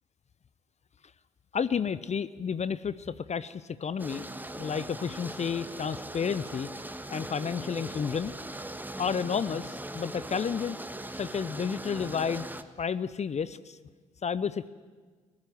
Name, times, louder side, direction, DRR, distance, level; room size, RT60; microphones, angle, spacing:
voice 1, 1.5-4.3 4.6-6.7 7.1-8.3 9.0-10.8 11.2-12.5 12.8-13.8 14.2-14.7, left 6 dB, 40° left, 17 dB, 0.7 m, -31 dB
sound 1, 4.0-12.6, right 1 dB, 10° right, 1.5 m, -40 dB
21.0 x 16.0 x 9.4 m, 1.5 s
hypercardioid pair, 40°, 17 cm